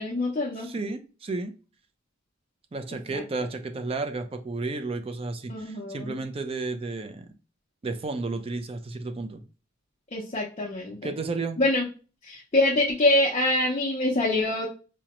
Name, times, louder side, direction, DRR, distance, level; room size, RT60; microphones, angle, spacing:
voice 1, 0.0-0.7 3.1-3.2 5.5-6.2 10.1-11.0 11.6-11.9 12.2-14.7, left 2 dB, 30° left, -3 dB, 0.6 m, -25 dB
voice 2, 0.6-1.5 2.7-7.3 7.8-9.4 11.0-11.6, right 3 dB, 30° right, 8 dB, 0.4 m, -32 dB
4.9 x 2.1 x 2.9 m, 0.36 s
head